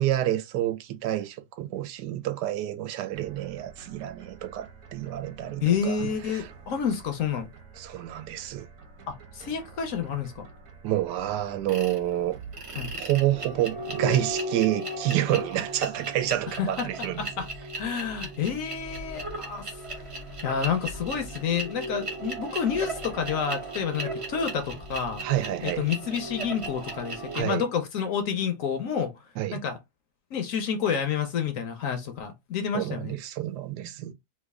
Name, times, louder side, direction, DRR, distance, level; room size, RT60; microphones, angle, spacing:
voice 1, 0.0-6.5 7.8-8.7 10.8-12.3 13.0-17.3 25.2-25.9 27.3-27.6 29.4-29.6 32.7-34.1, right 13 dB, 85° right, 1.2 m, -28 dB
sound 1, 3.1-14.4, right 5 dB, 60° right, 1.1 m, -48 dB
voice 2, 5.6-7.5 9.1-10.5 12.8-12.9 16.5-17.5 17.8-19.8 20.3-25.2 25.6-29.2 29.5-29.8 30.3-33.2, left 7 dB, 65° left, 0.9 m, -29 dB
sound 2, 11.7-12.0 12.5-27.4, right 1 dB, 35° right, 0.5 m, -36 dB
3.1 x 2.3 x 3.4 m
omnidirectional pair, 1.8 m